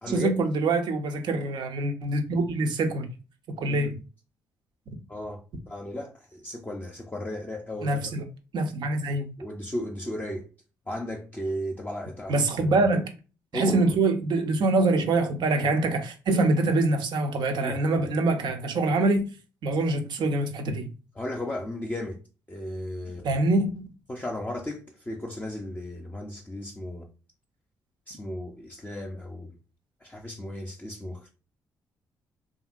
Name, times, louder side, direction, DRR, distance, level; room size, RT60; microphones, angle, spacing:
voice 1, 0.1-3.1 3.6-3.9 7.8-8.2 8.5-9.3 12.3-13.1 13.5-19.3 19.6-20.9 23.2-23.9, right 2 dB, 65° right, 0.7 m, -25 dB
voice 2, 5.1-8.0 9.4-10.5 10.9-12.7 13.5-14.0 17.6-17.8 21.2-22.2 22.5-23.4 24.1-27.1 28.1-29.5 30.0-31.3, left 1 dB, 20° left, 0.6 m, -35 dB
2.8 x 2.6 x 2.5 m
hypercardioid pair, 50°, 8 cm